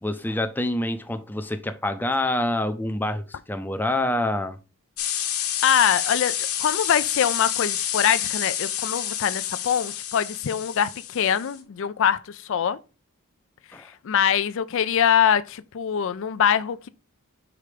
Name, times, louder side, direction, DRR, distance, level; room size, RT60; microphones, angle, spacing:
voice 1, 0.0-4.6 13.7-13.9, left 1 dB, 10° left, 0.5 m, -26 dB
sound 1, 5.0-11.6, left 10 dB, 80° left, 1.2 m, -29 dB
voice 2, 5.6-12.8 14.0-16.9, left 8 dB, 60° left, 0.4 m, -23 dB
5.0 x 4.4 x 4.9 m
head